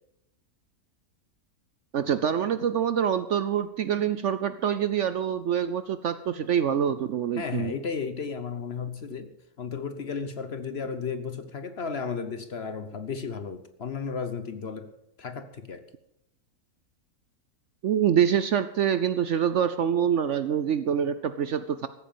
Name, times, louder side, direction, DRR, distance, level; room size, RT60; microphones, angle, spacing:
voice 1, 1.9-7.7 17.8-21.9, right 8 dB, 60° right, 13 dB, 0.8 m, -25 dB
voice 2, 7.3-9.3 9.6-14.9 15.2-15.9, left 5 dB, 50° left, 10 dB, 0.9 m, -34 dB
15.0 x 9.0 x 7.1 m, 0.81 s
omnidirectional pair, 1.7 m